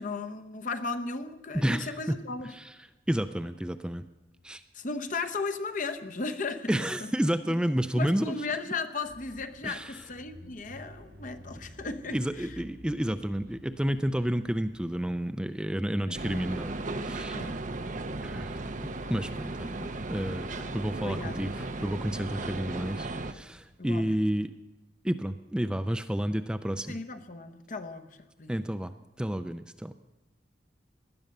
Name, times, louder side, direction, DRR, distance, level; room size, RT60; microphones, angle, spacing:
voice 1, 0.0-2.5 4.7-7.1 7.4-7.6 7.9-12.5 16.1-16.3 17.3-17.6 19.8-19.9 20.5-22.0 23.8-24.2 26.9-28.1 28.4-28.6, left 3 dB, 45° left, 9 dB, 1.0 m, -36 dB
voice 2, 1.5-2.2 2.5-2.7 3.1-4.0 4.4-4.6 6.7-8.4 9.6-10.0 12.1-17.4 18.2-18.6 19.1-19.8 20.1-24.5 25.0-27.0 28.5-28.9 29.2-29.9, equal, 5° right, 10 dB, 0.4 m, -30 dB
Bicycle / Mechanisms, 9.0-15.2, equal, 65° right, 3.9 m, -51 dB
sound 1, 16.1-23.3, right 2 dB, 45° right, 0.8 m, -36 dB
18.0 x 11.5 x 6.6 m, 1.0 s
head